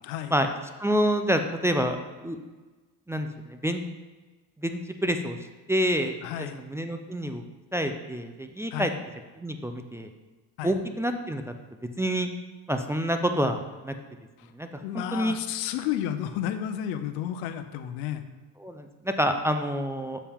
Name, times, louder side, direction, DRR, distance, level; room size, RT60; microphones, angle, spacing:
voice 1, 0.0-0.3 6.2-6.6 8.7-8.9 10.6-10.8 14.4-14.5 14.8-18.2, left 10 dB, 90° left, 10 dB, 0.8 m, -32 dB
voice 2, 0.8-2.4 3.1-3.8 4.6-5.4 5.7-7.4 7.7-8.9 9.4-10.1 10.6-11.4 12.0-12.3 12.7-13.9 14.6-14.7 14.9-15.4 18.6-20.2, equal, 5° right, 6 dB, 0.4 m, -27 dB
7.3 x 7.0 x 3.5 m, 1.3 s
supercardioid pair, 100°, 42 cm